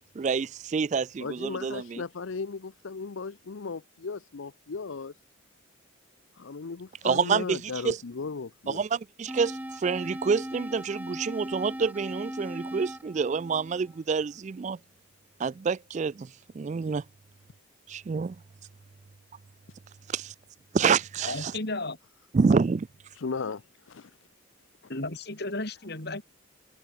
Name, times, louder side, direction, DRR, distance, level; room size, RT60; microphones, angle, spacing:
voice 1, 0.2-2.0 7.0-8.0 8.7-14.8 15.4-17.0 17.9-18.4 20.1-20.3 20.7-21.5 22.3-22.9, right 5 dB, 35° right, 0.3 m, -27 dB
voice 2, 1.2-5.1 6.3-8.8 23.1-24.1, left 4 dB, 70° left, 0.6 m, -36 dB
sound 1, 9.3-14.3, equal, 10° right, 2.4 m, -38 dB
voice 3, 21.2-22.0 24.9-26.2, left 2 dB, 50° left, 3.2 m, -33 dB
head